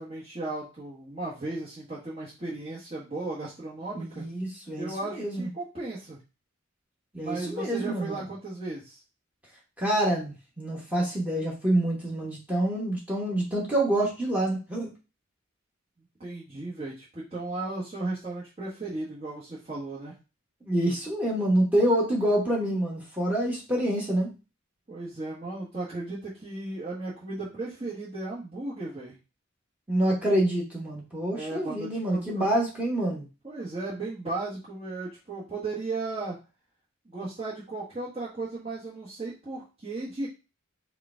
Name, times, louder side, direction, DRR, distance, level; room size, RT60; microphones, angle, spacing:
voice 1, 0.0-4.2 4.8-6.2 7.2-9.0 16.2-20.1 24.9-29.2 31.3-32.4 33.4-36.4 37.0-40.3, right 2 dB, 30° right, -9 dB, 1.3 m, -35 dB
voice 2, 3.9-5.4 7.1-8.2 9.8-14.9 20.6-24.3 29.9-33.2, right 1 dB, 5° right, -3 dB, 1.3 m, -27 dB
4.9 x 2.3 x 4.4 m, 0.30 s
head